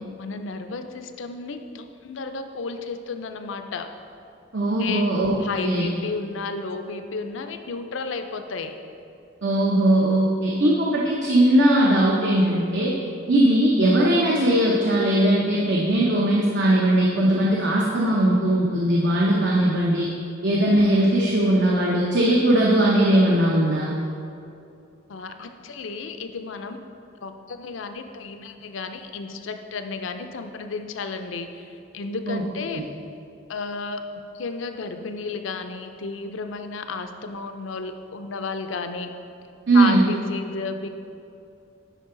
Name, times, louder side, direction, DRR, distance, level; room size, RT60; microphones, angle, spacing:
voice 1, 0.2-3.9 4.8-5.1 5.4-8.7 25.1-26.8 27.2-32.8 33.5-34.0 34.3-39.1 39.7-40.9, left 4 dB, 75° left, 7 dB, 0.5 m, -32 dB
voice 2, 4.5-5.4 5.6-5.9 9.4-12.9 13.3-20.1 20.4-23.9 32.3-32.4 32.7-32.8 39.7-40.1, right 1 dB, 60° right, -4 dB, 0.8 m, -19 dB
10.0 x 4.7 x 3.8 m, 2.6 s
head